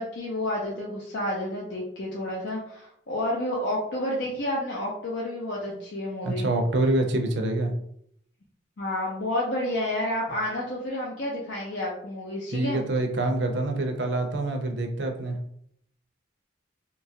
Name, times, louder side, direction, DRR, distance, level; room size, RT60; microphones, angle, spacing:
voice 1, 0.0-6.5 8.8-12.8, left 1 dB, 65° left, -4 dB, 0.5 m, -30 dB
voice 2, 6.2-7.7 12.5-15.4, right 2 dB, 65° right, 4 dB, 0.5 m, -26 dB
2.8 x 2.2 x 2.7 m, 0.68 s
head